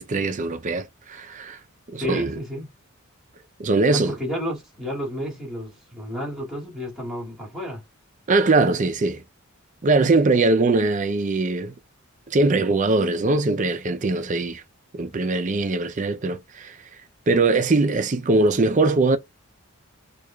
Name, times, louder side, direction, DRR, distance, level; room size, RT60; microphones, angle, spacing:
voice 1, 0.0-1.6 1.9-2.3 3.6-4.1 8.3-9.2 9.8-11.7 12.3-14.6 14.9-16.8 17.3-19.2, right 3 dB, 35° right, 0.5 m, -21 dB
voice 2, 2.0-2.7 3.8-7.8, equal, ahead, 2.1 m, -31 dB
4.9 x 2.4 x 2.3 m
head